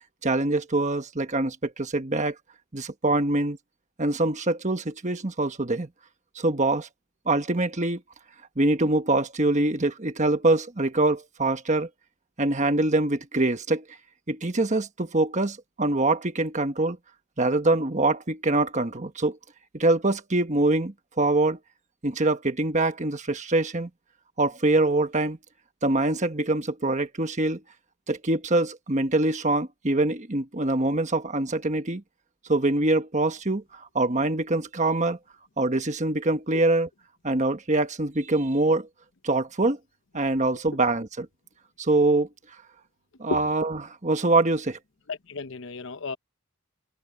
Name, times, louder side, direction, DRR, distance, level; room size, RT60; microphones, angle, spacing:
voice 1, 0.2-2.4 2.7-3.6 4.0-5.9 6.3-6.9 7.3-8.0 8.6-11.9 12.4-13.8 14.3-17.0 17.4-19.4 19.7-21.6 22.0-23.9 24.4-25.4 25.8-27.6 28.1-32.0 32.5-35.2 35.6-36.9 37.2-38.9 39.2-39.8 40.1-41.3 41.8-42.3 43.2-44.8, right 2 dB, 30° right, 1.4 m, -24 dB
voice 2, 45.1-46.2, left 4 dB, 55° left, 0.9 m, -33 dB
head